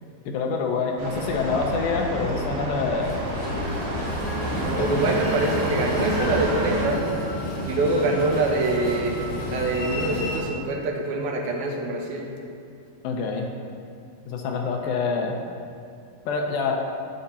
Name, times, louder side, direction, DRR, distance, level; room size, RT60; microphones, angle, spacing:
voice 1, 0.3-3.1 4.8-4.9 13.0-13.5 14.3-15.4 16.3-16.9, left 4 dB, 80° left, 2 dB, 2.4 m, -26 dB
sound 1, 1.0-6.8, right 1 dB, 60° right, 2.6 m, -30 dB
Train, 3.0-10.4, left 1 dB, 55° left, 1.3 m, -31 dB
voice 2, 4.6-7.1 7.7-9.2 9.4-12.3, right 2 dB, 80° right, 0 dB, 2.8 m, -25 dB
12.0 x 9.1 x 2.8 m, 2.4 s
omnidirectional pair, 4.4 m